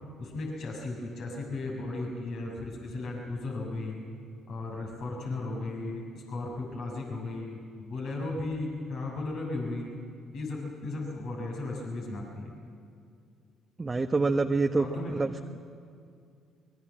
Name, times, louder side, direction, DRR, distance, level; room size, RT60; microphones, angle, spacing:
voice 1, 0.2-4.0 4.5-9.9 10.3-12.5 14.8-15.2, left 2 dB, 60° left, -1 dB, 6.8 m, -35 dB
voice 2, 13.8-14.9 15.1-15.6, right 3 dB, 30° right, 4 dB, 1.2 m, -26 dB
25.0 x 22.0 x 7.6 m, 2.4 s
hypercardioid pair, 50°, 0 cm